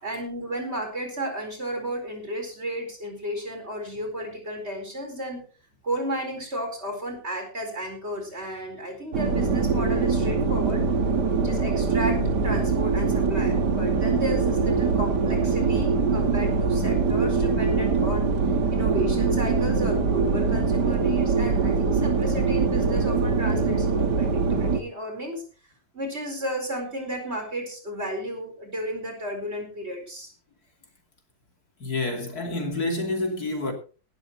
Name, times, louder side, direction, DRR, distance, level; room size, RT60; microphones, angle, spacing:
voice 1, 0.0-5.4 5.8-10.9 11.4-18.3 18.7-30.3, equal, 35° right, 4.8 m, -33 dB
sound 1, 9.1-24.8, right 4 dB, 65° right, 2.1 m, -23 dB
voice 2, 31.8-33.7, left 2 dB, 55° left, 3.2 m, -28 dB
18.0 x 13.0 x 3.1 m
omnidirectional pair, 2.0 m